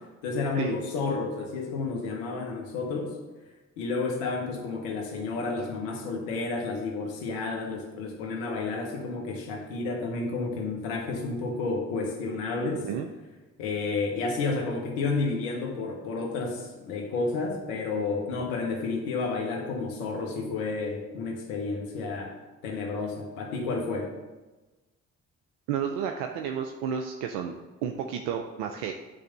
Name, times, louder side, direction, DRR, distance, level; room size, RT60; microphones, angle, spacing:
voice 1, 0.2-3.1 3.8-12.9 13.6-22.3 22.6-24.1, left 3 dB, 85° left, 1 dB, 1.1 m, -31 dB
voice 2, 25.7-28.9, right 8 dB, 85° right, 4 dB, 0.5 m, -31 dB
9.1 x 3.4 x 6.5 m, 1.1 s
hypercardioid pair, 45°, 35 cm